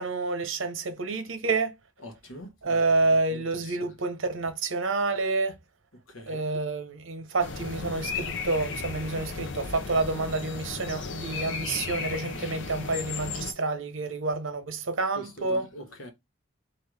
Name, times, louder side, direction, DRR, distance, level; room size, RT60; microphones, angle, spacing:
voice 1, 0.0-1.7 2.6-5.5 6.3-15.7, right 3 dB, 75° right, 0.9 m, -28 dB
voice 2, 2.0-2.9 3.3-3.9 6.1-6.4 15.2-16.1, equal, 85° left, 1.3 m, -44 dB
sound 1, 7.4-13.5, left 4 dB, 70° left, 0.7 m, -35 dB
3.8 x 2.5 x 4.7 m
head